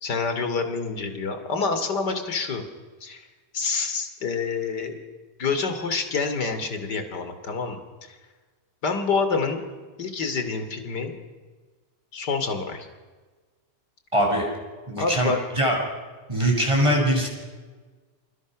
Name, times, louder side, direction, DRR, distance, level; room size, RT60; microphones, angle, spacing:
voice 1, 0.0-2.6 3.0-3.3 3.5-4.9 5.4-7.8 8.1-8.2 8.8-9.6 10.0-11.1 12.1-12.9 15.0-15.4, left 4 dB, 35° left, 8 dB, 3.3 m, -27 dB
voice 2, 14.1-14.5 14.9-15.8 16.3-17.3, equal, 10° right, 0 dB, 7.2 m, -22 dB
29.0 x 29.0 x 6.4 m, 1.4 s
omnidirectional pair, 3.5 m